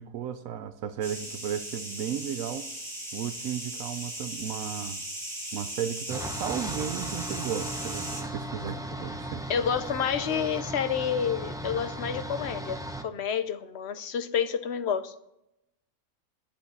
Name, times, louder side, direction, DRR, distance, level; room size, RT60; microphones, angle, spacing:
voice 1, 0.0-2.7 3.1-5.0 5.5-9.5, right 9 dB, 75° right, 1.0 m, -34 dB
sound 1, 1.0-8.2, right 1 dB, 40° right, 5.2 m, -38 dB
sound 2, 6.1-13.0, right 1 dB, 5° right, 0.4 m, -37 dB
voice 2, 9.5-15.2, left 7 dB, 55° left, 0.9 m, -29 dB
8.8 x 8.2 x 8.1 m
omnidirectional pair, 1.5 m